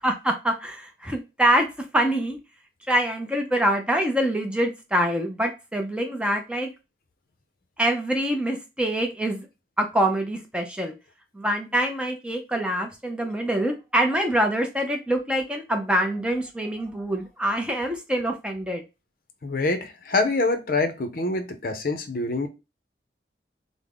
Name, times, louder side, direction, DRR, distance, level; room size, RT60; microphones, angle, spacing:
voice 1, 0.0-1.7 1.9-2.4 2.9-6.7 7.8-9.5 9.8-10.9 11.3-18.8, right 1 dB, 5° right, 0.5 m, -25 dB
voice 2, 19.4-22.5, left 3 dB, 55° left, 0.5 m, -25 dB
3.5 x 2.0 x 3.5 m
head